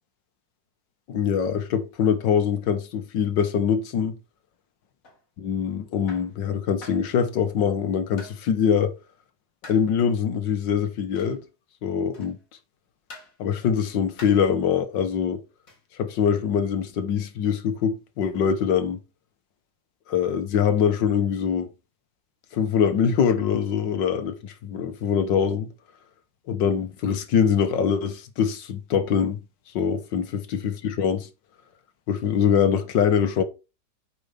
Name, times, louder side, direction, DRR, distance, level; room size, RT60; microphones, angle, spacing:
voice 1, 1.1-4.1 5.4-8.9 9.6-11.4 11.8-12.4 13.4-15.4 16.0-19.0 20.1-21.7 22.5-25.7 26.5-29.4 29.7-31.3 32.1-33.4, left 7 dB, 75° left, 1.9 m, -23 dB
sound 1, 5.0-5.2 6.1-6.3 6.8-7.1 8.2-8.4 9.6-9.9 11.2-11.4 12.1-12.4 13.1-13.4 14.2-14.5 15.7-15.9, left 2 dB, 50° left, 2.7 m, -45 dB
8.7 x 5.6 x 5.2 m
omnidirectional pair, 2.0 m